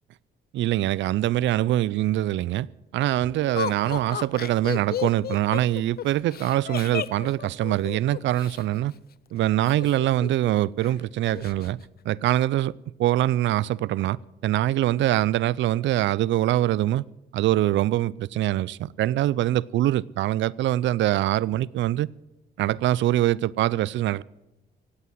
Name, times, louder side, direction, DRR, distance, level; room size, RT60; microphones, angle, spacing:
voice 1, 0.5-2.7 2.9-8.9 9.3-11.8 12.1-12.7 13.0-14.2 14.4-17.0 17.3-22.1 22.6-24.2, right 14 dB, 70° right, 0.4 m, -23 dB
Laughter, 3.6-8.6 9.7-10.5 10.8-10.9 11.2-11.7, left 9 dB, 50° left, 0.6 m, -33 dB
17.5 x 8.4 x 7.7 m
cardioid pair, 90°, 20 cm